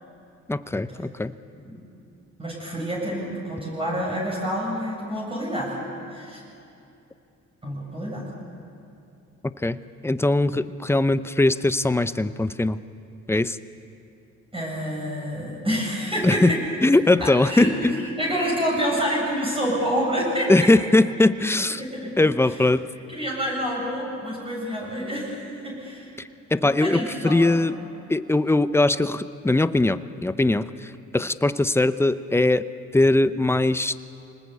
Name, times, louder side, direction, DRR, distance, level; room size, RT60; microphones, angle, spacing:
voice 1, 0.5-1.3 9.4-9.8 10.0-12.8 13.3-13.6 16.2-16.5 16.8-17.9 20.5-21.8 22.2-22.9 26.5-27.7 28.1-32.6 32.9-34.1, left 2 dB, 10° left, 13 dB, 0.7 m, -21 dB
voice 2, 2.4-5.7 6.1-6.4 7.6-8.2 14.5-16.6 17.2-17.7 18.2-20.7 21.8-22.3 23.1-26.1 26.6-27.6, equal, 20° right, -4 dB, 7.9 m, -28 dB
25.0 x 19.5 x 8.4 m, 2.6 s
cardioid pair, 90°, 30 cm